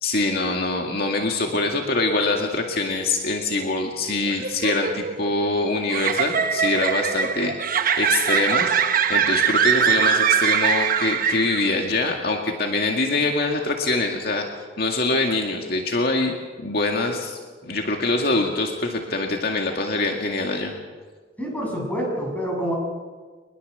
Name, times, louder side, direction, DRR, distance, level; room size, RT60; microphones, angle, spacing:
voice 1, 0.0-14.5 14.8-16.3 16.6-20.7, left 2 dB, 55° left, 2 dB, 2.1 m, -24 dB
sound 1, 4.3-11.9, right 7 dB, 50° right, 1.1 m, -22 dB
voice 2, 21.4-22.8, equal, 10° left, -1 dB, 7.5 m, -27 dB
23.5 x 21.0 x 6.9 m, 1.4 s
head